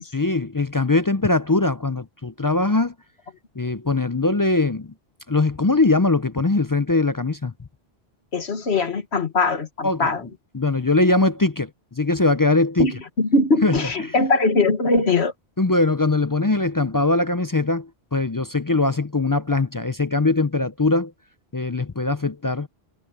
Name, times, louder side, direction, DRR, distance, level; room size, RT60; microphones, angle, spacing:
voice 1, 0.1-2.9 3.6-4.9 5.3-7.5 9.8-10.1 10.5-12.9 13.6-14.1 15.6-21.1 21.5-22.7, left 3 dB, 30° left, 0.4 m, -21 dB
voice 2, 8.3-10.2 12.8-15.3, left 3 dB, 85° left, 1.9 m, -21 dB
omnidirectional pair, 1.1 m